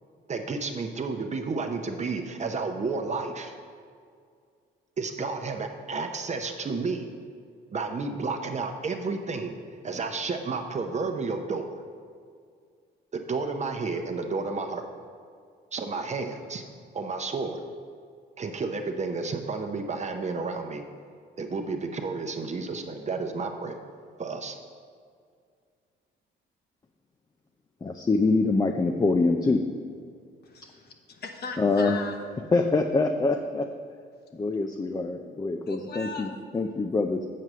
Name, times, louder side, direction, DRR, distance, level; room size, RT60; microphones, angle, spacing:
voice 1, 0.3-3.5 5.0-7.1 7.7-9.6 9.8-11.8 13.1-14.9 15.7-16.6 16.9-17.6 18.4-20.8 21.4-23.8 24.2-24.5, right 4 dB, 35° right, 5 dB, 0.8 m, -31 dB
voice 2, 27.8-29.7 31.6-32.1 32.4-33.7 34.3-37.3, left 3 dB, 20° left, 4 dB, 0.4 m, -25 dB
voice 3, 30.4-32.2 35.7-36.3, left 4 dB, 55° left, 4 dB, 1.0 m, -38 dB
7.6 x 4.7 x 6.7 m, 2.2 s
cardioid pair, 90°, 20 cm